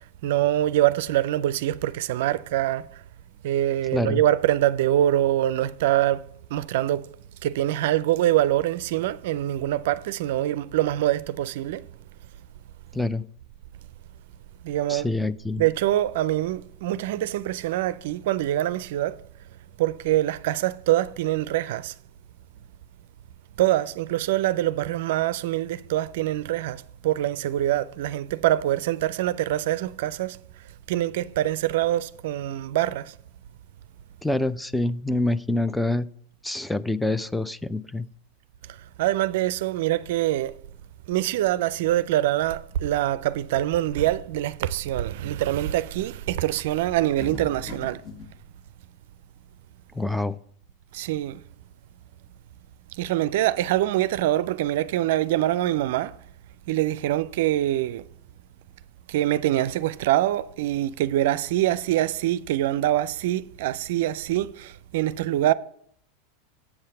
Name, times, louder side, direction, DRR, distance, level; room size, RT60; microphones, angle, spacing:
voice 1, 0.2-2.9 3.4-6.2 6.5-7.1 7.4-11.8 14.6-15.1 15.6-19.2 19.8-21.9 23.6-30.4 30.9-33.1 39.0-40.5 41.1-48.0 50.9-51.4 53.0-56.1 56.7-58.0 59.1-65.5, right 13 dB, 70° right, 0.4 m, -24 dB
voice 2, 3.9-4.2 12.9-13.2 14.9-15.6 34.2-36.1 36.4-38.1 49.9-50.4, left 2 dB, 5° left, 0.4 m, -26 dB
sound 1, 47.2-48.3, left 2 dB, 45° left, 1.7 m, -38 dB
8.0 x 5.7 x 6.7 m
hypercardioid pair, 105°, 0 cm